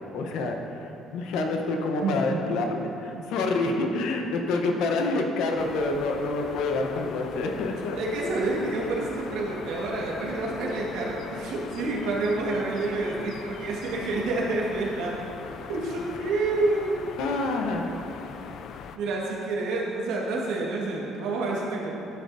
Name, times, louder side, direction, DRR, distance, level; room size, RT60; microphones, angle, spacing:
voice 1, 0.1-8.0 17.2-17.9, left 3 dB, 70° left, 3 dB, 0.9 m, -27 dB
voice 2, 2.0-2.4 3.1-3.2 7.6-15.2 15.7-17.0 18.9-21.9, right 2 dB, 80° right, -3 dB, 1.6 m, -28 dB
sound 1, 5.6-19.0, left 7 dB, 50° left, 0.3 m, -41 dB
10.5 x 8.2 x 2.7 m, 2.9 s
cardioid pair, 160°, 0 cm